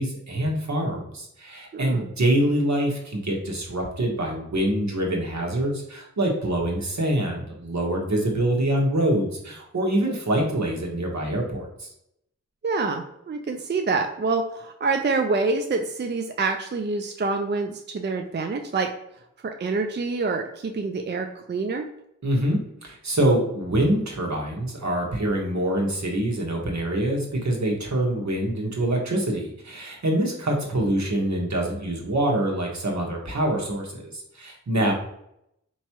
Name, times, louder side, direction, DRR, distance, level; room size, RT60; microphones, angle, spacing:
voice 1, 0.0-11.9 22.2-34.9, right 1 dB, 70° right, -1 dB, 1.2 m, -25 dB
voice 2, 1.7-2.1 12.6-18.9 19.4-21.9 34.8-34.9, right 3 dB, 35° right, 4 dB, 0.4 m, -26 dB
4.5 x 3.0 x 2.9 m, 0.77 s
wide cardioid pair, 60°, 29 cm